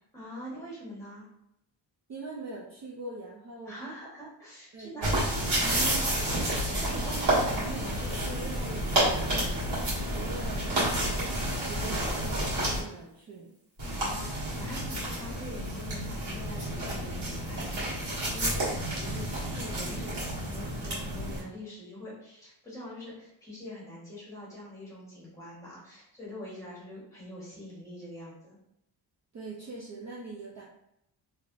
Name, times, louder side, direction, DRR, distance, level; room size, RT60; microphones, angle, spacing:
voice 1, 0.1-1.3 3.6-6.4 6.8-9.4 13.8-28.6, equal, 5° left, -7 dB, 1.3 m, -43 dB
voice 2, 2.1-3.8 4.7-5.2 10.1-13.5 29.3-30.6, right 3 dB, 40° right, -4 dB, 0.4 m, -43 dB
sound 1, 5.0-12.8 13.8-21.4, right 1 dB, 65° right, 1.4 m, -30 dB
3.3 x 2.7 x 2.5 m, 0.80 s
wide cardioid pair, 170°, 44 cm